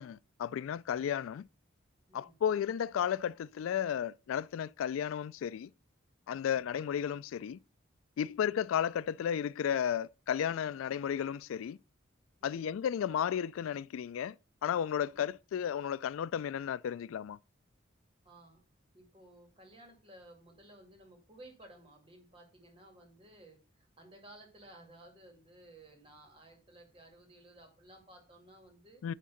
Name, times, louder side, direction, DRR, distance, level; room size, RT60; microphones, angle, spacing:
voice 1, 0.0-1.5 2.1-5.7 6.3-7.6 8.2-11.8 12.4-14.4 14.6-17.4 29.0-29.1, left 8 dB, 85° left, 0.3 m, -33 dB
voice 2, 12.4-12.8 15.1-15.3 18.2-18.6 18.9-29.0, right 1 dB, 25° right, 2.4 m, -56 dB
10.5 x 3.7 x 5.7 m
head